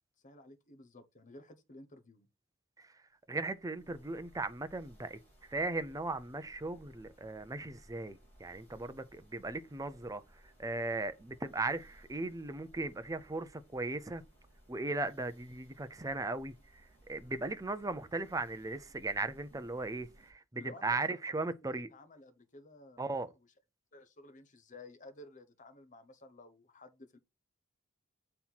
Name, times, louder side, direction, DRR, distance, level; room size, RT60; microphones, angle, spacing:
voice 1, 0.2-2.3 20.6-21.2 21.7-23.2 23.9-27.2, left 2 dB, 40° left, 1.1 m, -54 dB
sound 1, 3.3-20.3, right 1 dB, 10° left, 4.3 m, -62 dB
voice 2, 3.3-5.2 5.5-14.2 14.7-16.5 17.1-21.9 23.0-23.3, right 2 dB, 15° right, 0.6 m, -37 dB
7.6 x 4.3 x 4.1 m
head